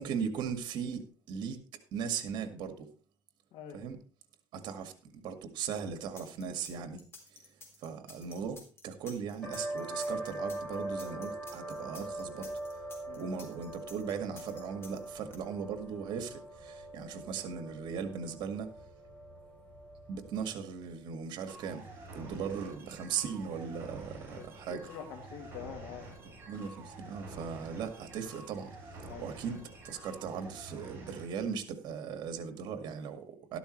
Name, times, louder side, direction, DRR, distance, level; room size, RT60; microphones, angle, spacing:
voice 1, 0.0-1.6 1.9-2.9 3.7-4.0 4.5-4.9 5.2-7.0 7.8-12.5 13.2-18.7 20.1-21.8 22.2-24.8 26.5-28.8 29.2-33.6, right 6 dB, 65° right, 7 dB, 2.0 m, -38 dB
sound 1, 6.2-15.4, left 3 dB, 30° left, 3.7 m, -52 dB
sound 2, 9.4-20.7, right 1 dB, 15° left, 7.3 m, -42 dB
sound 3, 21.5-31.3, right 2 dB, 25° right, 7.8 m, -48 dB
voice 2, 24.3-26.1 29.1-29.3, left 8 dB, 85° left, 5 dB, 2.5 m, -45 dB
13.0 x 12.5 x 3.2 m, 0.37 s
cardioid pair, 120°, 8 cm